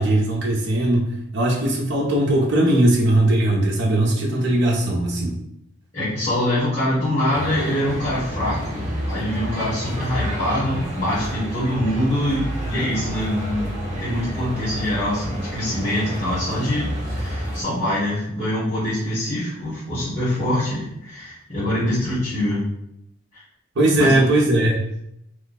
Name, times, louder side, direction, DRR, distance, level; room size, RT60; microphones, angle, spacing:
voice 1, 0.0-5.3 23.8-24.9, right 1 dB, 55° right, -3 dB, 0.7 m, -19 dB
voice 2, 5.9-22.6 23.3-23.4 24.0-24.3, left 1 dB, 30° left, -13 dB, 1.3 m, -24 dB
sound 1, 7.3-17.6, equal, 35° right, 1.0 m, -29 dB
3.1 x 2.2 x 4.0 m, 0.81 s
head